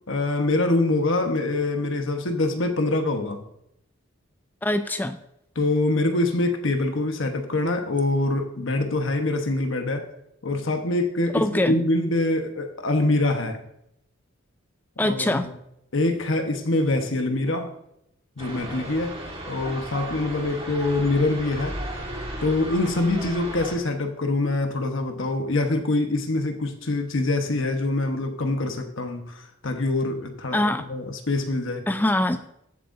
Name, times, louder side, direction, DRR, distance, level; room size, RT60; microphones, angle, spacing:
voice 1, 0.1-3.4 5.6-10.1 10.4-13.6 15.0-15.4 15.9-17.7 18.4-19.2 19.5-21.8 22.4-30.6 30.9-31.8, left 2 dB, 70° left, 5 dB, 1.1 m, -24 dB
voice 2, 4.6-5.2 11.3-11.8 15.0-15.5 30.5-30.8 31.9-32.4, left 1 dB, 10° left, 10 dB, 0.3 m, -23 dB
sound 1, 18.4-23.7, right 1 dB, 25° right, 1.6 m, -35 dB
14.5 x 7.6 x 2.7 m, 0.79 s
head